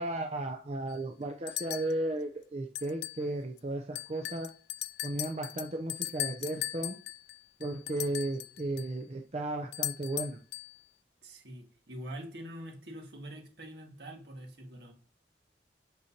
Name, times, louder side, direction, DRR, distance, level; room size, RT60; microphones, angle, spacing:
voice 1, 0.0-4.5 5.0-7.0 7.6-10.4, right 2 dB, 35° right, 2 dB, 0.6 m, -35 dB
sound 1, 0.9-1.0 1.5-2.0 2.7-3.3 3.6-3.7 3.9-8.9 9.7-10.8, left 13 dB, 65° left, 0.3 m, -38 dB
voice 2, 11.2-14.9, right 1 dB, 70° right, 2 dB, 1.8 m, -45 dB
8.0 x 6.4 x 2.8 m, 0.40 s
head